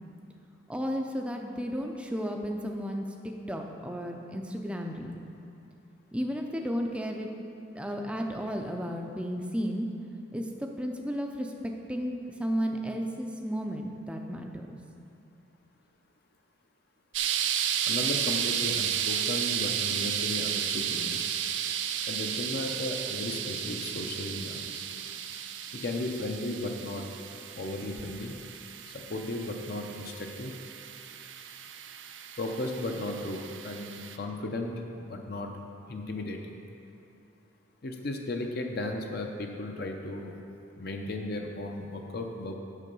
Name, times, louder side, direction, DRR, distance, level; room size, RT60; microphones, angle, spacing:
voice 1, 0.7-5.2 6.1-7.3 7.7-9.9 10.3-14.8, equal, 5° right, 2 dB, 0.4 m, -33 dB
sound 1, 17.1-34.2, right 9 dB, 70° right, 0.5 m, -33 dB
voice 2, 17.9-21.3 22.1-24.8 25.7-27.1 27.6-28.3 29.1-30.5 32.4-35.5 35.9-36.5 37.8-40.3 40.8-42.5, left 2 dB, 50° left, 2 dB, 0.6 m, -35 dB
8.3 x 6.8 x 5.4 m, 2.7 s
head